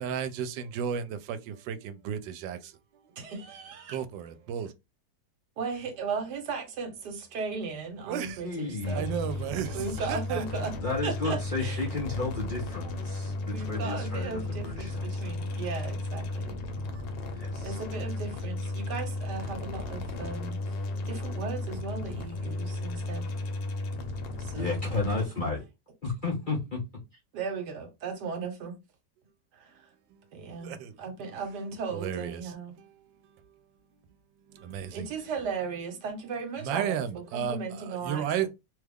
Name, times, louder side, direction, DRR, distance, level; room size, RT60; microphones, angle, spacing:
voice 1, 0.0-1.8 2.0-2.6 3.9-4.7 8.1-8.4 8.9-10.7 30.6-30.8 31.9-32.4 34.7-35.1 36.6-37.6 38.0-38.5, right 8 dB, 90° right, 1.3 m, -33 dB
voice 2, 3.2-4.0 5.6-9.0 9.7-10.7 11.0-11.9 12.8-13.0 13.5-16.6 17.6-23.3 24.4-24.8 27.3-28.8 29.5-29.9 30.3-32.7 34.9-38.5, right 5 dB, 70° right, 1.4 m, -36 dB
voice 3, 8.4-9.0 10.8-15.3 17.3-17.8 24.5-25.6 26.0-26.8, left 3 dB, 45° left, 0.6 m, -33 dB
sound 1, 8.8-25.3, left 2 dB, 90° left, 1.4 m, -34 dB
3.2 x 2.3 x 3.4 m
omnidirectional pair, 1.9 m